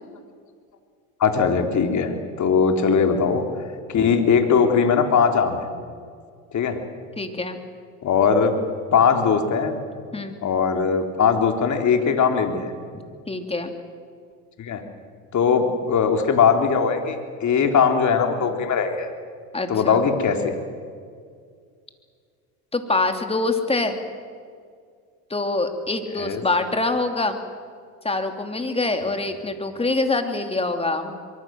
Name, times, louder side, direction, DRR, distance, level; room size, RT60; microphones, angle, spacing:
voice 1, 1.2-3.4 3.9-5.7 6.5-6.8 8.0-8.5 8.9-9.8 10.4-12.7 14.6-14.8 15.3-19.1 19.7-20.5 26.2-26.4, left 6 dB, 40° left, 5 dB, 3.7 m, -20 dB
voice 2, 7.2-7.6 10.1-10.3 13.3-13.7 19.5-20.0 22.7-24.0 25.3-27.4 28.0-31.2, left 2 dB, 15° left, 6 dB, 2.9 m, -25 dB
24.0 x 23.5 x 7.7 m, 2.1 s
supercardioid pair, 100°, 45 cm